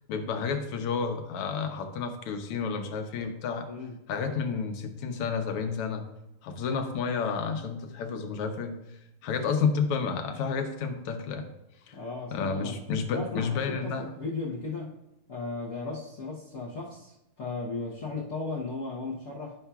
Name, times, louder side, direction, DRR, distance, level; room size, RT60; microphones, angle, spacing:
voice 1, 0.1-3.7 4.1-6.1 6.4-8.8 9.2-11.5 11.9-12.0 12.3-14.1, left 5 dB, 85° left, 5 dB, 1.7 m, -30 dB
voice 2, 11.9-12.8 13.1-14.9 15.3-19.6, left 3 dB, 50° left, -6 dB, 1.0 m, -36 dB
11.5 x 5.5 x 2.3 m, 0.88 s
omnidirectional pair, 2.4 m